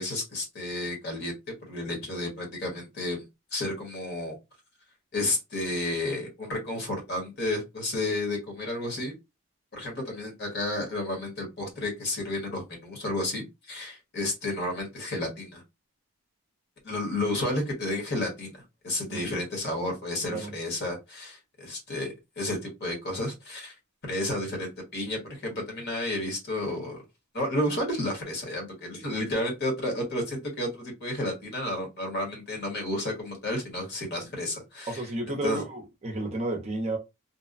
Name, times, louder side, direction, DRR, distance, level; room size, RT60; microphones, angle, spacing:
voice 1, 0.0-3.3 3.5-4.3 5.1-9.1 9.7-15.6 16.8-18.6 18.8-23.7 24.0-27.0 27.3-35.0 35.3-35.6, left 1 dB, 45° left, 1.1 m, -31 dB
voice 2, 34.9-37.0, right 2 dB, 30° right, 0.5 m, -32 dB
2.8 x 2.1 x 2.4 m
head